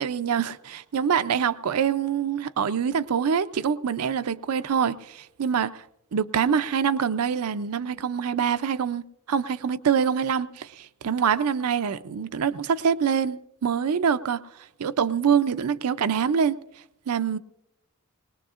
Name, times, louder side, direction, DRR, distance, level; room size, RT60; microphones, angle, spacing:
voice 1, 0.0-5.9 6.1-9.0 9.3-14.4 14.8-16.6 17.1-17.4, right 7 dB, 85° right, 0.5 m, -25 dB
21.0 x 20.0 x 2.5 m
head